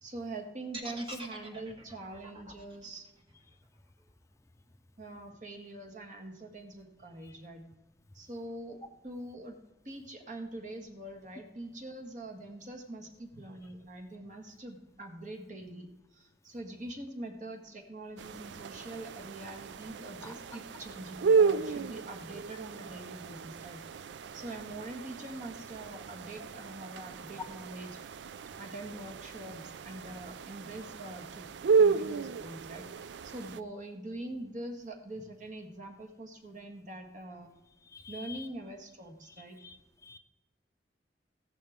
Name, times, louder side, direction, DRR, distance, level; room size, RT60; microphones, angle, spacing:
voice 1, 0.0-3.1 5.0-7.7 8.1-9.6 9.8-24.1 24.3-28.0 28.6-31.5 31.8-32.9 33.2-37.5 38.1-39.6, right 1 dB, 45° right, 4 dB, 1.6 m, -44 dB
sound 1, 0.7-4.8, right 2 dB, 30° right, 1.4 m, -46 dB
sound 2, 18.2-33.6, right 5 dB, 90° right, 0.4 m, -33 dB
voice 2, 37.9-38.5 39.6-39.8 40.0-40.2, left 5 dB, 15° left, 7 dB, 0.5 m, -47 dB
14.5 x 11.0 x 3.6 m, 1.1 s
head